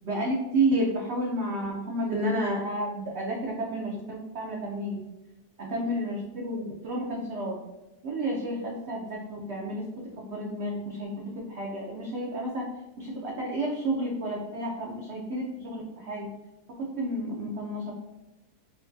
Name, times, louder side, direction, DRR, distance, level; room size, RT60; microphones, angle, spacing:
voice 1, 0.0-5.0 5.7-7.6 8.0-9.8 10.2-12.7 13.0-16.3 16.8-17.9, right 1 dB, 60° right, -3 dB, 0.7 m, -31 dB
4.6 x 2.2 x 2.6 m, 1.0 s
omnidirectional pair, 1.8 m